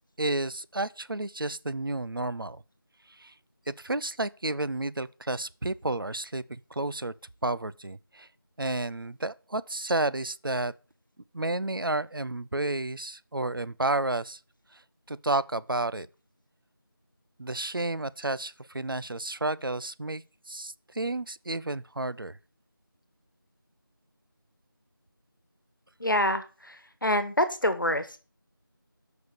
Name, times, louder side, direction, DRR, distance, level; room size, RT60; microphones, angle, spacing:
voice 1, 0.2-2.6 3.1-3.3 3.7-7.1 7.4-8.3 8.6-10.7 11.3-14.4 14.7-14.8 15.1-16.1 17.4-22.4, right 2 dB, 70° right, 0.5 m, -31 dB
voice 2, 26.0-28.2, left 1 dB, 60° left, 1.3 m, -27 dB
5.8 x 5.7 x 6.7 m
figure-of-eight pair, 175°, 12 cm